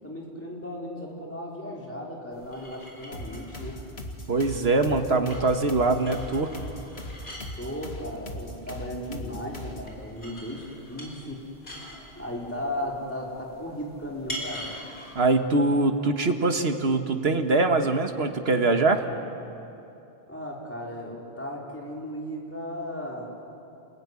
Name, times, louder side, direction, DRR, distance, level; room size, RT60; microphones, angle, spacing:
voice 1, 0.0-3.8 7.6-11.4 12.1-14.7 20.3-23.3, left 1 dB, 10° left, -3 dB, 4.9 m, -36 dB
sound 1, 2.3-15.3, equal, 55° left, 5.3 m, -45 dB
sound 2, 3.1-10.0, left 1 dB, 85° left, 2.3 m, -40 dB
voice 2, 4.3-6.5 15.2-19.1, right 3 dB, 80° right, 6 dB, 1.9 m, -23 dB
29.0 x 21.0 x 9.9 m, 2.8 s
omnidirectional pair, 1.0 m